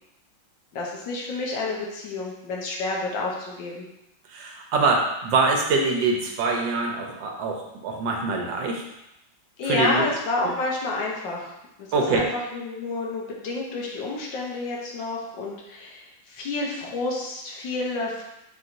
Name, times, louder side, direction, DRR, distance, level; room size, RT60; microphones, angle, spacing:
voice 1, 0.7-3.8 9.6-11.5 11.9-18.2, left 3 dB, 70° left, -2 dB, 1.5 m, -29 dB
voice 2, 4.3-8.8 9.6-10.1 10.4-10.5 11.9-12.2, right 3 dB, 75° right, 1 dB, 1.3 m, -24 dB
4.7 x 4.1 x 2.6 m, 0.87 s
omnidirectional pair, 2.1 m